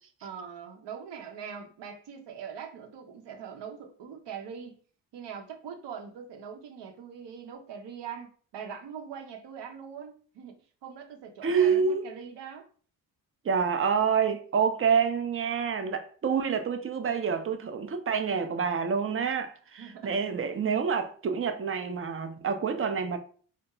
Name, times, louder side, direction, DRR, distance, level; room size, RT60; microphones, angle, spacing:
voice 1, 0.2-4.8 5.1-10.6 10.8-12.7 19.8-20.2, right 7 dB, 65° right, 0.8 m, -42 dB
voice 2, 11.4-12.1 13.4-23.2, right 6 dB, 30° right, 0.5 m, -27 dB
2.3 x 2.1 x 2.9 m
supercardioid pair, 60°, 46 cm